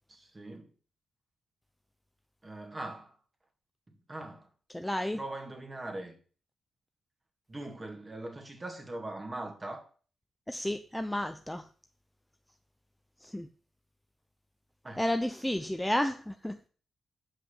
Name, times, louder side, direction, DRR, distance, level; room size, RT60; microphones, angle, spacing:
voice 1, 0.1-0.7 2.4-3.2 3.9-4.5 5.1-6.2 7.5-9.8 14.8-15.1, right 2 dB, 25° right, 2.1 m, -41 dB
voice 2, 4.7-5.2 10.5-11.7 13.2-13.5 15.0-16.7, left 1 dB, 5° left, 0.5 m, -32 dB
7.6 x 5.7 x 6.6 m
cardioid pair, 110°, 0 cm